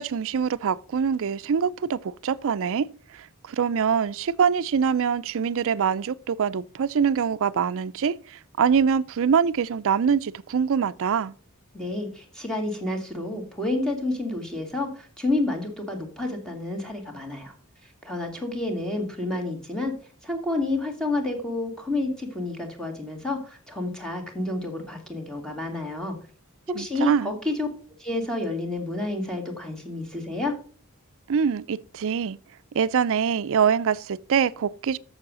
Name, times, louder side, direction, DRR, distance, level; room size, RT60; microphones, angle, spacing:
voice 1, 0.0-2.9 3.2-11.3 26.8-27.3 31.3-32.4 32.7-35.0, right 7 dB, 60° right, 0.4 m, -24 dB
voice 2, 11.7-17.5 18.0-19.9 20.2-26.2 26.8-27.7 28.0-30.5, left 2 dB, 5° left, 2.1 m, -29 dB
7.3 x 7.0 x 6.2 m
head